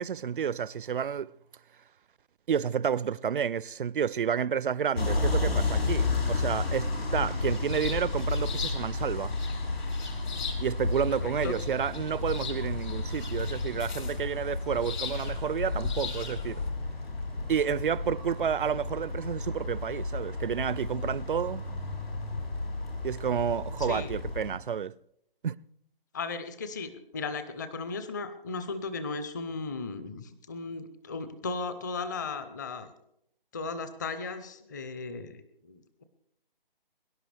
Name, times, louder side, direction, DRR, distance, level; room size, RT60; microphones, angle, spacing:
voice 1, 0.0-1.3 2.5-9.3 10.6-16.6 17.5-21.7 23.0-24.9 25.4-25.6, right 7 dB, 60° right, 0.5 m, -30 dB
sound 1, 4.9-24.5, left 3 dB, 90° left, 4.2 m, -32 dB
sound 2, 7.4-16.7, left 5 dB, 50° left, 2.3 m, -38 dB
voice 2, 11.1-11.5 23.8-24.1 26.1-32.9 33.5-36.0, left 4 dB, 20° left, 0.7 m, -36 dB
23.0 x 11.0 x 3.4 m
figure-of-eight pair, 155°, 29 cm